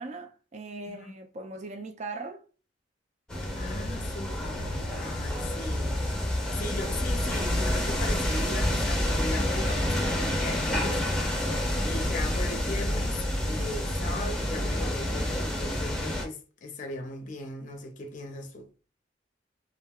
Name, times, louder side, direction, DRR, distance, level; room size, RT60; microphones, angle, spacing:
voice 1, 0.0-2.4, right 3 dB, 40° right, 0.5 m, -39 dB
sound 1, 3.3-16.2, left 1 dB, 5° left, 0.7 m, -28 dB
voice 2, 3.5-6.0 6.5-11.0 11.8-18.7, left 2 dB, 45° left, 0.5 m, -38 dB
2.3 x 2.1 x 3.5 m
head